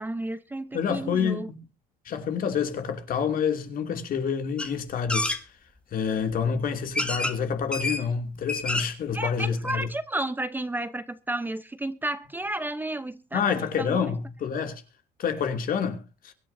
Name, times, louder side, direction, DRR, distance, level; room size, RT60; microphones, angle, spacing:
voice 1, 0.0-1.5 9.1-14.1, right 1 dB, 10° right, 0.9 m, -32 dB
voice 2, 0.7-1.6 2.0-5.4 5.9-9.9 13.3-14.8 15.2-16.3, left 7 dB, 55° left, 2.8 m, -28 dB
sound 1, 4.6-4.7 5.1-5.4 6.3-6.4 6.9-7.4 7.7-8.0 8.4-9.0 9.4-9.5 9.7-9.8, left 1 dB, 5° left, 1.6 m, -28 dB
23.5 x 9.8 x 2.7 m
cardioid pair, 110°, 17 cm